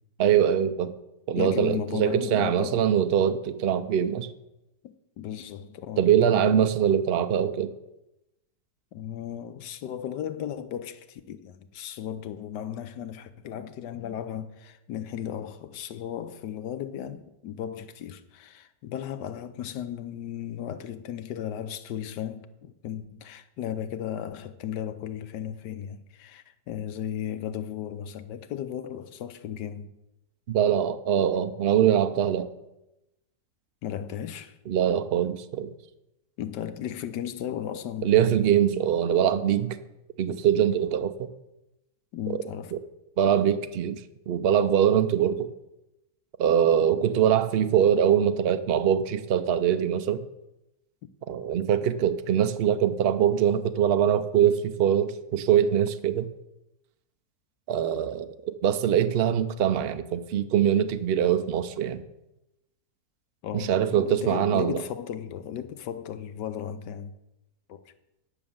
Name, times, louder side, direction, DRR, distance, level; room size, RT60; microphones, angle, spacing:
voice 1, 0.2-0.9 1.3-4.3 6.0-7.7 30.5-32.5 34.7-35.7 38.0-39.8 40.2-41.1 43.2-44.0 44.3-45.5 46.4-50.2 51.3-56.3 57.7-62.0 63.5-64.8, right 9 dB, 85° right, 0.5 m, -23 dB
voice 2, 1.3-2.8 4.8-6.7 8.9-29.9 33.8-34.6 36.4-38.5 42.1-42.7 47.2-47.3 63.4-67.1 67.7-67.8, left 10 dB, 80° left, 1.3 m, -35 dB
10.0 x 6.3 x 7.1 m
omnidirectional pair, 1.8 m